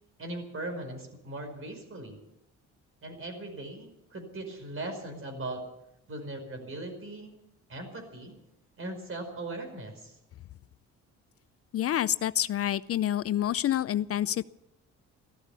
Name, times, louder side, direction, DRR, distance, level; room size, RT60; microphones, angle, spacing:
voice 1, 0.2-2.2 3.0-5.6 6.1-7.3 7.7-8.3 8.8-10.2, right 2 dB, 45° right, 5 dB, 5.2 m, -39 dB
voice 2, 11.7-14.5, left 11 dB, 50° left, 16 dB, 0.5 m, -28 dB
14.5 x 13.5 x 7.0 m, 0.85 s
cardioid pair, 90°, 30 cm